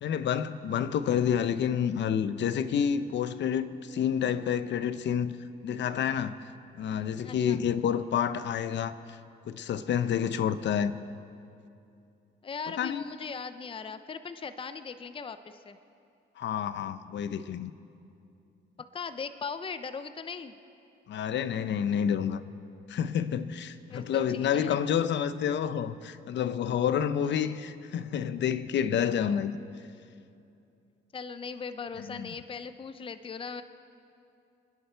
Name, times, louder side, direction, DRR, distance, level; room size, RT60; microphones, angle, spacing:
voice 1, 0.0-5.3 5.6-6.4 6.8-9.2 9.5-10.9 12.8-13.1 16.4-17.7 21.1-22.4 22.9-29.5 32.1-32.3, left 8 dB, 65° left, 13 dB, 0.7 m, -29 dB
voice 2, 7.2-7.6 12.4-15.8 18.8-20.5 23.9-24.8 31.1-33.6, left 5 dB, 25° left, 11 dB, 0.6 m, -39 dB
27.0 x 10.5 x 4.6 m, 2.6 s
cardioid pair, 90°, 20 cm